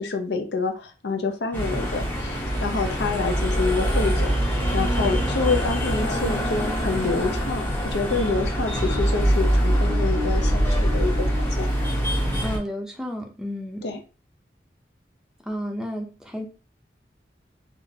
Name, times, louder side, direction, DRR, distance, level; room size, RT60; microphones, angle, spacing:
voice 1, 0.0-4.4 4.7-11.8 12.1-12.2 13.8-14.0, left 4 dB, 80° left, 0.7 m, -27 dB
sound 1, 1.5-12.6, equal, 10° left, 1.1 m, -24 dB
voice 2, 12.4-13.8 15.5-16.5, equal, 5° right, 0.5 m, -32 dB
3.6 x 2.5 x 2.7 m
head